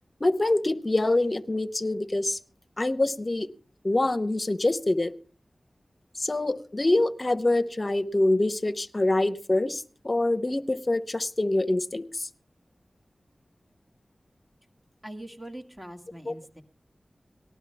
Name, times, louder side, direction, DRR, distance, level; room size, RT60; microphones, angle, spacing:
voice 1, 0.2-2.4 2.8-3.5 3.8-5.1 6.2-12.3 16.3-16.4, left 2 dB, 45° left, 14 dB, 0.8 m, -25 dB
voice 2, 15.0-16.6, right 1 dB, 10° right, 4 dB, 2.1 m, -42 dB
19.0 x 12.5 x 3.5 m, 0.41 s
cardioid pair, 45°, 0 cm